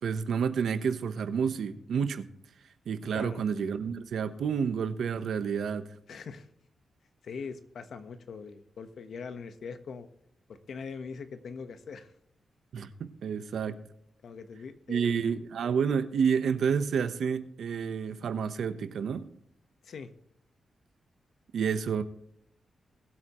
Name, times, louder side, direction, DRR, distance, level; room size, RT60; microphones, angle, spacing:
voice 1, 0.0-2.3 2.9-5.9 12.7-13.8 14.9-19.3 21.5-22.0, right 6 dB, 75° right, 1.0 m, -29 dB
voice 2, 6.1-6.5 7.2-10.1 10.5-12.1 14.2-15.3 19.8-20.1, left 5 dB, 65° left, 1.3 m, -42 dB
21.0 x 8.2 x 3.1 m
wide cardioid pair, 155°, 0 cm